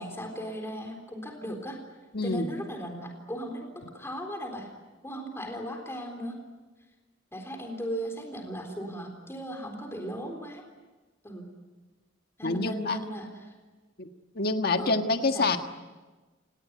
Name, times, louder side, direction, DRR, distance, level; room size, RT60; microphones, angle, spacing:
voice 1, 0.0-1.8 2.2-3.7 3.9-4.7 5.0-6.4 7.3-10.6 11.2-11.5 12.4-13.5 14.8-15.0 15.3-15.5, equal, 15° left, 3 dB, 3.8 m, -37 dB
voice 2, 2.1-2.5 12.4-13.0 14.0-14.1 14.3-15.6, left 3 dB, 55° left, 6 dB, 1.7 m, -26 dB
30.0 x 19.0 x 9.5 m, 1.3 s
head